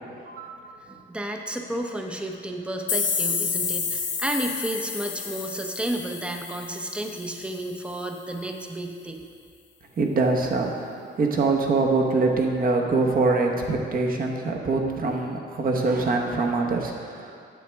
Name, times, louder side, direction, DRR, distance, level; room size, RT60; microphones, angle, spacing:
voice 1, 0.3-0.7 10.0-17.5, right 3 dB, 45° right, 1 dB, 1.1 m, -24 dB
voice 2, 0.9-9.2, right 1 dB, 5° right, 3 dB, 0.8 m, -32 dB
sound 1, 2.9-7.6, left 5 dB, 70° left, 1.1 m, -30 dB
9.4 x 7.5 x 3.5 m, 2.2 s
cardioid pair, 90°, 20 cm